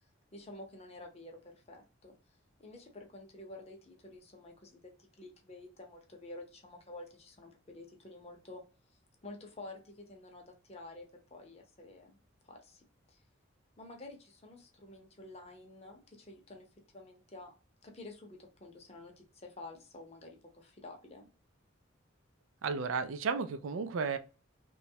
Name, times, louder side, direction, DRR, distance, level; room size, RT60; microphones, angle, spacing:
voice 1, 0.3-2.1 2.6-4.8 5.2-8.6 9.2-12.2 12.4-12.8 13.1-13.2 13.8-16.7 16.9-17.5 17.8-21.3, left 2 dB, 30° left, 0.7 m, -50 dB
voice 2, 22.6-24.2, right 5 dB, 85° right, 0.4 m, -33 dB
3.0 x 2.2 x 2.7 m
head